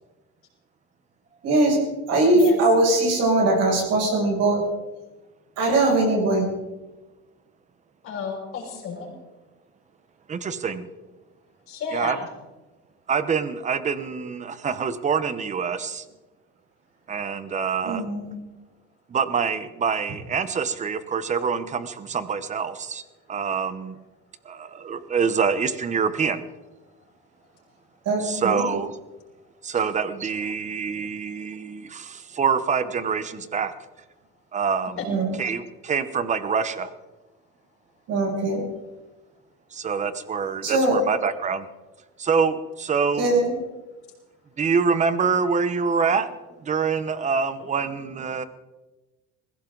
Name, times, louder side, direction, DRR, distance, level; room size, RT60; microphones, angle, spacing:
voice 1, 1.4-1.8 2.1-4.6 5.6-6.5 17.8-18.4 28.1-28.7 35.1-35.3 38.1-38.6 40.6-41.0 43.2-43.6, right 2 dB, 55° right, -2 dB, 7.0 m, -21 dB
voice 2, 8.0-9.1 11.7-12.3 35.0-35.1 47.6-47.7, left 5 dB, 50° left, -1 dB, 6.3 m, -32 dB
voice 3, 10.3-10.9 11.9-12.2 13.1-16.0 17.1-18.0 19.1-23.0 23.3-23.9 24.5-26.4 28.2-29.0 29.6-33.7 34.5-35.0 35.4-36.9 39.7-41.6 42.2-43.3 44.6-46.3 46.7-48.4, right 6 dB, 25° right, 13 dB, 1.0 m, -25 dB
21.0 x 16.5 x 4.0 m, 1.1 s
cardioid pair, 155°, 29 cm